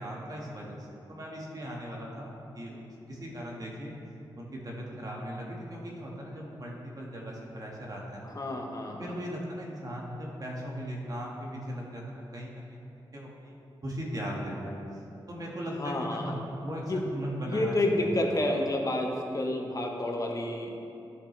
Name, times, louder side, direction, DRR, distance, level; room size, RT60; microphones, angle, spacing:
voice 1, 0.0-3.9 4.4-8.3 8.9-12.8 13.1-13.5 13.8-14.8 15.3-18.1, equal, 45° right, -3 dB, 1.7 m, -38 dB
voice 2, 8.2-9.1 15.8-16.4 16.7-17.0 17.4-20.8, left 1 dB, 40° left, 1 dB, 1.2 m, -30 dB
13.0 x 5.9 x 3.3 m, 2.8 s
cardioid pair, 75°, 9 cm